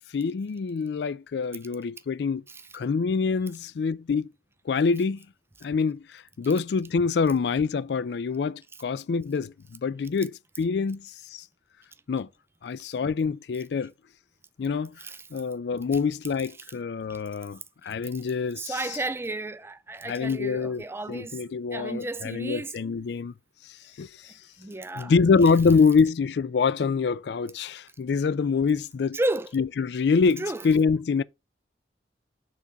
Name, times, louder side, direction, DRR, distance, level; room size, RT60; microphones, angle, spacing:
voice 1, 0.1-2.4 2.7-4.3 4.7-5.2 5.6-11.4 12.1-12.3 12.6-13.9 14.6-14.9 15.3-18.8 20.1-20.8 21.1-23.3 24.0-24.1 25.0-29.2 29.5-31.2, left 5 dB, 70° left, 0.4 m, -25 dB
voice 2, 18.5-21.4 21.7-22.7 24.6-25.1 29.1-29.5 30.4-30.7, right 2 dB, 15° right, 0.4 m, -32 dB
6.1 x 4.0 x 4.6 m
head